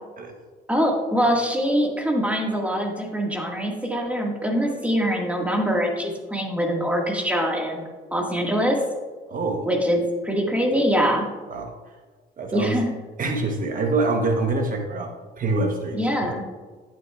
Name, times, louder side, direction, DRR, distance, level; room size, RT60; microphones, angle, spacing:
voice 1, 0.7-8.8 9.7-11.3 12.5-12.9 15.9-16.4, equal, 5° right, 0 dB, 1.8 m, -23 dB
voice 2, 9.3-9.7 11.5-11.7 12.4-12.8 13.2-16.3, right 2 dB, 45° right, 3 dB, 1.0 m, -25 dB
11.5 x 8.7 x 2.4 m, 1.4 s
cardioid pair, 95°, 19 cm